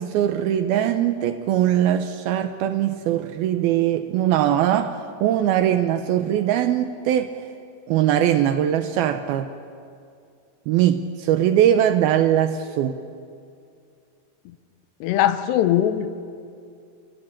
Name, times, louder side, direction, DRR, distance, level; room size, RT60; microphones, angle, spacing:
voice 1, 0.0-7.4 7.9-9.5 10.7-13.0, right 11 dB, 75° right, 9 dB, 2.3 m, -21 dB
voice 2, 15.0-16.1, left 11 dB, 80° left, 11 dB, 3.0 m, -20 dB
30.0 x 15.5 x 8.8 m, 2.4 s
omnidirectional pair, 5.0 m